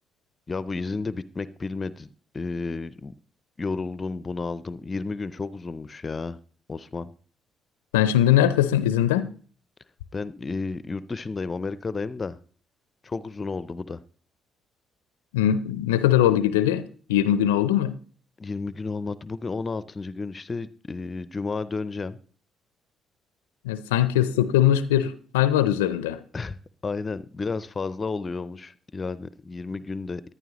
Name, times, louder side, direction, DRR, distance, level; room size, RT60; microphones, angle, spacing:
voice 1, 0.5-3.1 3.6-6.4 6.7-7.1 10.1-12.4 13.0-14.0 18.4-22.2 26.3-26.6 26.8-30.2, left 4 dB, 35° left, 0.5 m, -32 dB
voice 2, 7.9-9.3 15.3-18.0 23.6-26.2, left 11 dB, 85° left, 0.4 m, -21 dB
14.0 x 11.0 x 3.0 m
hypercardioid pair, 45°, 0 cm